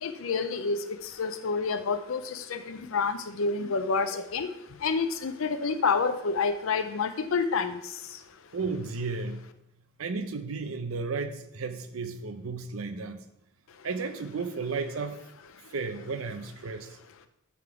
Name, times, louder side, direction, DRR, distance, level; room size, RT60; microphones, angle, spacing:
voice 1, 0.0-4.5 4.8-7.8, left 4 dB, 75° left, 9 dB, 0.5 m, -28 dB
voice 2, 8.5-9.4 10.0-13.2 13.8-15.2 15.7-17.0, right 4 dB, 85° right, 9 dB, 0.6 m, -33 dB
10.5 x 3.6 x 4.8 m, 0.80 s
head